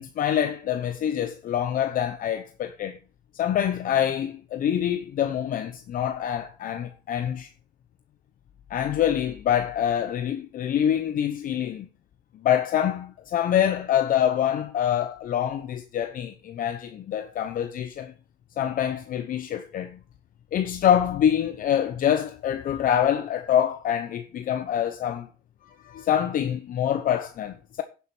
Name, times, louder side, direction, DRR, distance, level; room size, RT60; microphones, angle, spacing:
voice 1, 0.0-3.0 3.3-7.5 8.7-11.9 12.4-18.1 18.6-20.0 20.5-25.3 25.6-27.8, left 10 dB, 55° left, 0.9 m, -25 dB
10.5 x 7.2 x 4.4 m
cardioid pair, 110°, 17 cm